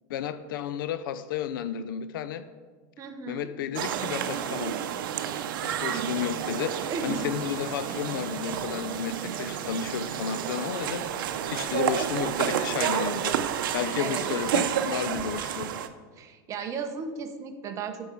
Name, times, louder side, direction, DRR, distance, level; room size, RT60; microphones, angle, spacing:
voice 1, 0.1-2.5 3.3-4.8 5.6-11.1 11.5-13.4 13.7-15.7, left 8 dB, 85° left, 13 dB, 0.5 m, -32 dB
voice 2, 3.0-3.5 6.9-7.3 14.0-14.2 16.2-18.1, right 5 dB, 30° right, 6 dB, 0.8 m, -35 dB
sound 1, 3.8-15.9, right 9 dB, 85° right, 0.6 m, -30 dB
8.6 x 4.8 x 5.9 m, 1.4 s
supercardioid pair, 145°, 11 cm